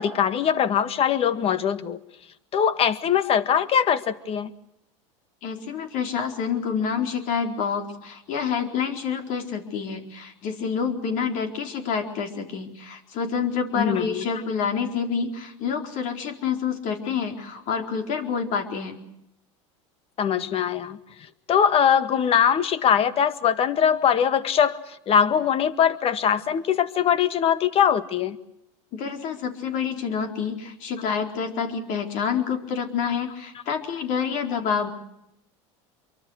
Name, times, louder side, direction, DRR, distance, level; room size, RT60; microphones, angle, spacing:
voice 1, 0.0-2.0 2.5-4.5 13.8-14.2 20.2-21.0 21.5-28.4, left 8 dB, 40° left, 12 dB, 1.8 m, -22 dB
voice 2, 5.4-19.0 28.9-34.9, left 6 dB, 55° left, 5 dB, 4.3 m, -28 dB
26.5 x 23.5 x 6.5 m, 0.81 s
supercardioid pair, 110°, 16 cm